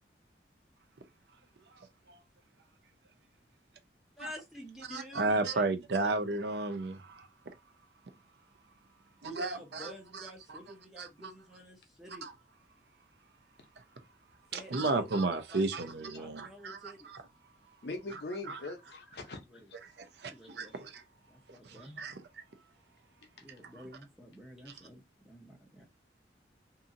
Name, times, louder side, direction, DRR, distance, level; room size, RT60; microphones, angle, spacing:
voice 1, 1.8-2.2 4.2-4.3 4.9-7.3 9.2-10.6 11.0-11.1 12.2-12.3 14.5-17.2 18.5-18.6 20.0-21.0 21.5-22.2, right 3 dB, 70° right, 0.5 m, -34 dB
voice 2, 4.2-5.6 6.0-6.2 9.2-12.3 14.5-17.1 19.4-19.6 20.3-20.8 21.3-22.0 23.4-25.8, equal, ahead, 0.8 m, -50 dB
voice 3, 17.8-19.8 23.2-23.3, left 2 dB, 65° left, 0.7 m, -41 dB
2.7 x 2.6 x 2.5 m
head